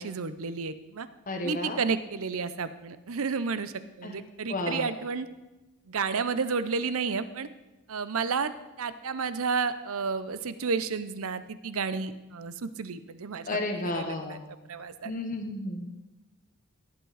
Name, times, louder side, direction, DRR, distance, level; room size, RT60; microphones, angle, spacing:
voice 1, 0.0-1.1 1.4-5.3 5.9-7.5 7.9-8.5 8.8-13.6 13.8-15.1, right 5 dB, 70° right, 13 dB, 0.7 m, -31 dB
voice 2, 1.3-1.8 4.0-4.1 4.5-4.8 13.5-14.4 15.0-15.8, left 2 dB, 35° left, 4 dB, 1.1 m, -32 dB
17.0 x 8.4 x 4.1 m, 1.0 s
head